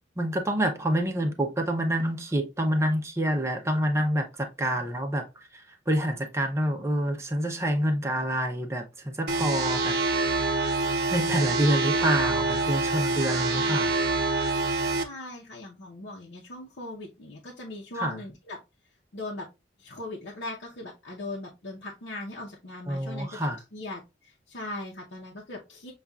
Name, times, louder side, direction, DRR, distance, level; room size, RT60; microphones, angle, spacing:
voice 1, 0.2-5.3 5.5-10.0 10.3-10.6 11.1-13.9 17.9-18.2 22.9-23.6, right 1 dB, 15° right, 0.6 m, -27 dB
sound 1, 9.3-15.0, right 3 dB, 60° right, 0.6 m, -26 dB
voice 2, 13.2-13.9 15.0-18.6 19.1-19.5 19.8-25.9, left 2 dB, 75° left, 0.8 m, -39 dB
6.8 x 2.4 x 2.3 m
head